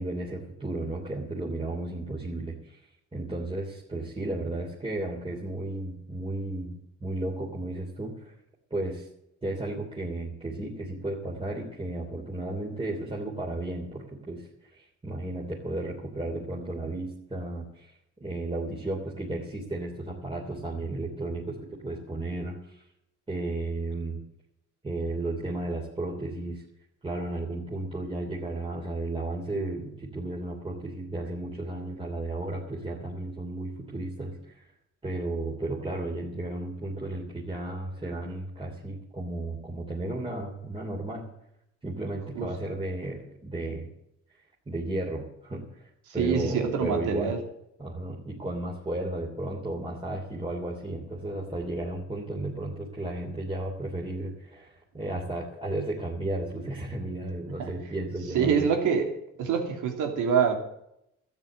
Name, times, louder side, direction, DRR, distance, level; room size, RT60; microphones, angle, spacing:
voice 1, 0.0-2.8 3.1-8.3 8.7-9.1 9.4-17.9 18.2-22.8 23.3-24.2 24.8-26.6 27.0-34.7 35.0-41.2 41.8-43.9 44.7-47.3 47.8-58.7, right 2 dB, 20° right, -3 dB, 3.2 m, -34 dB
voice 2, 46.2-47.4 57.6-57.7 58.3-59.1 59.4-60.6, right 6 dB, 90° right, 3 dB, 2.9 m, -25 dB
13.0 x 9.1 x 8.8 m, 0.78 s
cardioid pair, 90°, 30 cm